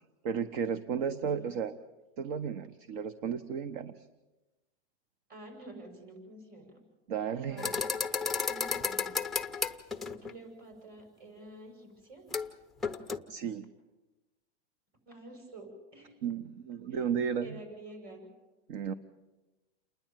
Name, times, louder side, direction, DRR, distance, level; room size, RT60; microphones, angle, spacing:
voice 1, 0.2-1.8 2.2-4.1 7.1-7.7 13.3-13.7 16.2-17.6 18.7-18.9, right 7 dB, 45° right, 14 dB, 1.0 m, -34 dB
voice 2, 5.3-6.8 7.5-7.8 8.4-9.3 10.2-12.2 15.1-16.2 16.9-17.0 17.4-18.3, right 2 dB, 25° right, 4 dB, 6.3 m, -49 dB
sound 1, 7.6-10.3 12.3-12.5 12.8-13.2, left 5 dB, ahead, 0.7 m, -32 dB
29.0 x 10.5 x 9.0 m, 1.1 s
supercardioid pair, 155°, 35 cm